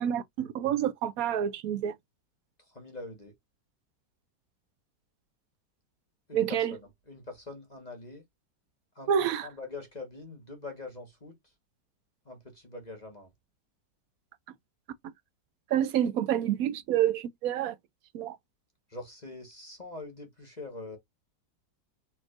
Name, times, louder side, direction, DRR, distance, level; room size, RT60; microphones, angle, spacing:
voice 1, 0.0-1.9 6.3-6.7 9.1-9.5 15.7-17.8 18.1-18.4, right 10 dB, 70° right, 0.9 m, -28 dB
voice 2, 2.6-3.3 6.3-8.2 8.9-9.1 9.4-11.5 12.2-13.3 18.9-21.0, left 3 dB, 25° left, 1.3 m, -44 dB
4.3 x 4.3 x 2.4 m
omnidirectional pair, 1.9 m